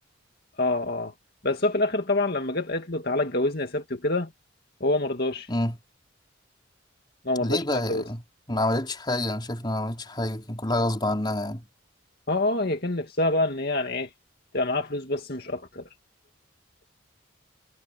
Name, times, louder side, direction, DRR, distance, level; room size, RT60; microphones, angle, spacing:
voice 1, 0.6-1.1 1.4-4.3 4.8-5.5 7.2-8.0 12.3-14.1 14.5-15.8, left 2 dB, 50° left, 2.2 m, -26 dB
voice 2, 7.4-8.2 8.5-11.7, left 1 dB, 20° left, 3.9 m, -27 dB
head